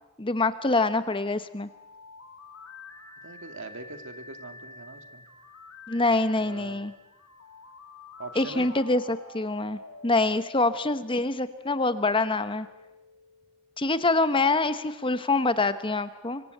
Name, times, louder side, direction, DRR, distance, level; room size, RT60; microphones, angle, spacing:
voice 1, 0.2-1.7 5.9-6.9 8.3-12.7 13.8-16.4, left 2 dB, 25° left, 12 dB, 1.1 m, -25 dB
sound 1, 0.6-14.5, left 3 dB, 80° left, 2.5 m, -49 dB
voice 2, 3.2-5.2 6.4-6.8 8.2-8.7, right 3 dB, 60° right, 7 dB, 2.3 m, -42 dB
25.5 x 24.5 x 8.1 m, 0.92 s
head